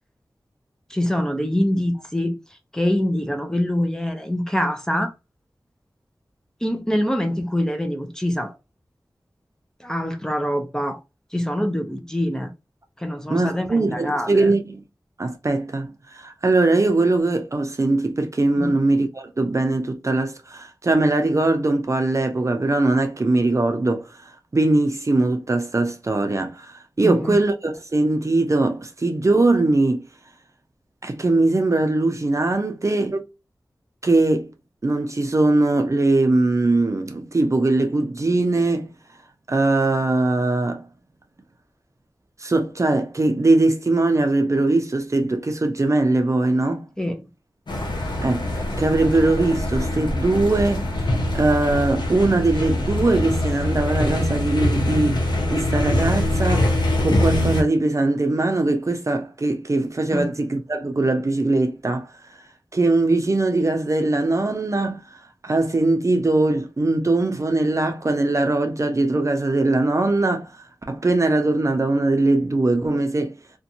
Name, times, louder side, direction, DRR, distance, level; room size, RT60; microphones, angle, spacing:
voice 1, 0.9-2.4 2.7-5.1 6.6-8.5 9.8-11.0 11.3-12.5 13.0-14.5 18.6-18.8 27.0-27.3 47.0-47.3 60.1-60.3, left 1 dB, 10° left, 0.5 m, -24 dB
voice 2, 13.3-14.8 15.2-30.0 31.0-33.2 34.0-34.5 34.8-38.9 39.5-40.9 42.4-46.8 48.2-51.1 51.3-62.1 62.7-65.0 65.4-70.5 70.9-73.3, right 2 dB, 40° right, 0.5 m, -21 dB
sound 1, 47.7-57.6, left 1 dB, 75° left, 0.7 m, -23 dB
2.5 x 2.2 x 2.6 m
wide cardioid pair, 65°, 8 cm